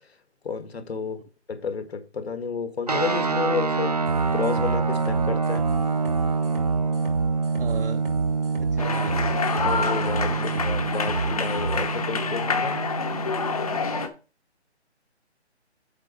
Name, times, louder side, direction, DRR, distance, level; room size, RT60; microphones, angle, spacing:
voice 1, 0.4-1.2 1.5-4.0 4.3-5.7 9.6-12.8, left 5 dB, 65° left, 1.6 m, -31 dB
sound 1, 2.9-14.1, right 4 dB, 35° right, 0.5 m, -26 dB
sound 2, 4.1-11.8, right 4 dB, 90° right, 4.0 m, -30 dB
voice 2, 7.6-8.0 8.6-9.5 10.3-10.7, right 5 dB, 55° right, 0.8 m, -37 dB
sound 3, 8.8-14.1, left 5 dB, 35° left, 0.9 m, -28 dB
8.3 x 3.7 x 6.3 m
hypercardioid pair, 175°, 34 cm